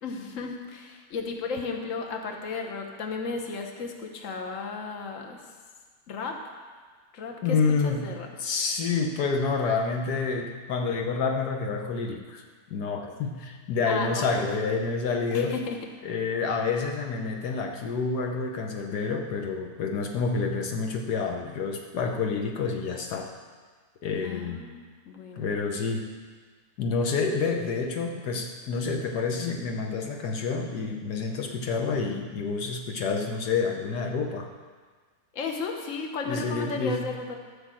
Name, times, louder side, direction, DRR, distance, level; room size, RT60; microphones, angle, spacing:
voice 1, 0.0-5.4 6.1-6.4 7.1-8.3 13.9-14.4 15.3-15.8 24.2-25.5 35.3-37.4, left 4 dB, 55° left, 3 dB, 1.4 m, -34 dB
voice 2, 7.4-12.4 12.7-15.6 16.0-23.3 24.0-24.6 25.4-26.1 26.8-34.5 36.2-37.1, left 4 dB, 80° left, 2 dB, 1.5 m, -28 dB
13.5 x 5.6 x 7.5 m, 1.5 s
omnidirectional pair, 1.7 m